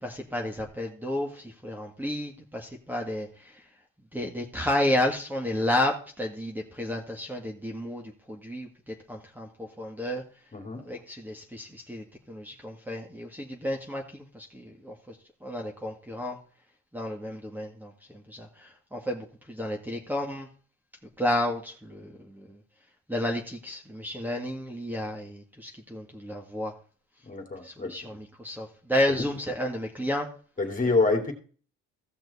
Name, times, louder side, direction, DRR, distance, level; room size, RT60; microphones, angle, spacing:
voice 1, 0.0-3.6 4.1-10.2 10.8-15.2 15.4-16.4 16.9-20.5 21.2-22.6 23.1-26.7 27.6-30.3, left 1 dB, 5° right, 1 dB, 1.9 m, -32 dB
voice 2, 10.5-10.8 27.3-27.9 29.1-29.3 30.6-31.3, left 3 dB, 25° left, 4 dB, 2.6 m, -27 dB
15.5 x 6.1 x 4.1 m, 0.41 s
cardioid pair, 90°, 30 cm